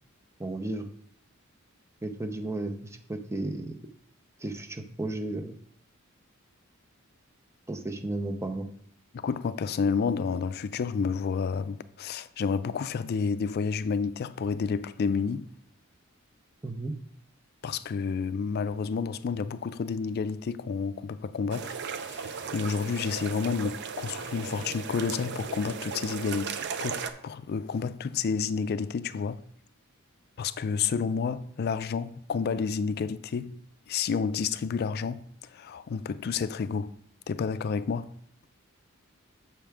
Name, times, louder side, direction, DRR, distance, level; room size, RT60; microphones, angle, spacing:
voice 1, 0.4-0.9 2.0-3.8 4.4-5.5 7.7-8.7 16.6-16.9, right 2 dB, 15° right, 0.6 m, -33 dB
voice 2, 9.1-15.5 17.6-26.6 26.8-29.4 30.4-33.6 33.9-36.9 37.3-38.1, left 5 dB, 50° left, 0.3 m, -30 dB
sound 1, 21.5-27.1, right 6 dB, 55° right, 0.5 m, -36 dB
7.4 x 5.7 x 3.5 m
head